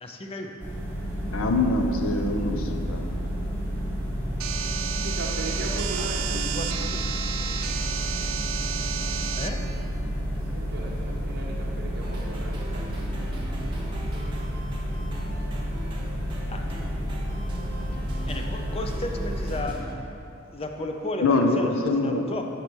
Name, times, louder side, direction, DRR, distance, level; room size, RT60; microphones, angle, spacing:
voice 1, 0.0-0.5 6.0-7.0 9.3-9.7 16.5-17.1 18.3-20.1 20.5-22.4, left 1 dB, 30° left, 3 dB, 0.6 m, -34 dB
sound 1, 0.6-19.6, equal, 10° left, 1.2 m, -30 dB
voice 2, 1.3-3.1 21.2-22.2, left 2 dB, 80° left, 4 dB, 0.6 m, -24 dB
sound 2, 4.4-9.5, right 8 dB, 85° right, 0.4 m, -32 dB
voice 3, 5.0-6.3 10.3-13.0, right 2 dB, 55° right, -3 dB, 0.7 m, -37 dB
sound 3, 12.0-19.9, right 1 dB, 25° right, 0.8 m, -41 dB
6.8 x 4.3 x 6.2 m, 2.8 s
head